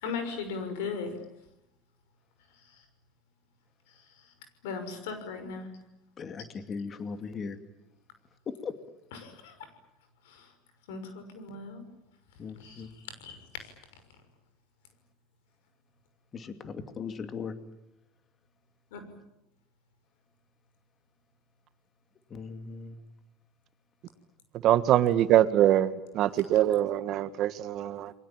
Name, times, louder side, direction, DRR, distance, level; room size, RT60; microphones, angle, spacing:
voice 1, 0.0-1.1 4.6-5.7 9.1-9.5 10.9-11.8 12.6-12.8 13.2-13.4 18.9-19.0, left 5 dB, 90° left, 9 dB, 6.1 m, -37 dB
voice 2, 6.2-7.6 8.5-8.7 12.4-12.9 16.3-17.5 22.3-23.0, left 5 dB, 35° left, 9 dB, 2.4 m, -38 dB
voice 3, 24.6-28.1, right 12 dB, 55° right, 12 dB, 1.7 m, -23 dB
29.0 x 22.5 x 8.9 m, 0.86 s
supercardioid pair, 105°, 0 cm